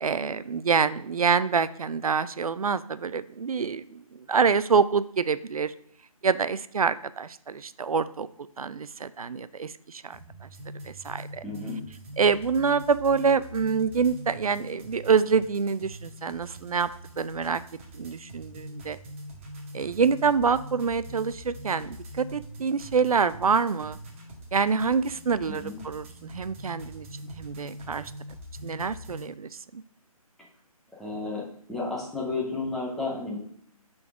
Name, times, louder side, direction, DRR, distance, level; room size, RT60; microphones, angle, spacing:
voice 1, 0.0-5.7 6.2-8.3 8.6-10.2 10.8-11.4 12.2-16.9 17.2-17.6 17.9-19.0 19.7-24.0 24.5-28.1 28.6-29.8, right 5 dB, 70° right, 15 dB, 0.4 m, -26 dB
sound 1, 10.1-29.3, equal, 20° right, 0.8 m, -43 dB
voice 2, 11.4-11.8 25.5-25.8 30.9-31.4 31.7-33.4, left 3 dB, ahead, -5 dB, 0.5 m, -32 dB
5.7 x 3.9 x 6.0 m, 0.64 s
figure-of-eight pair, 150°, 19 cm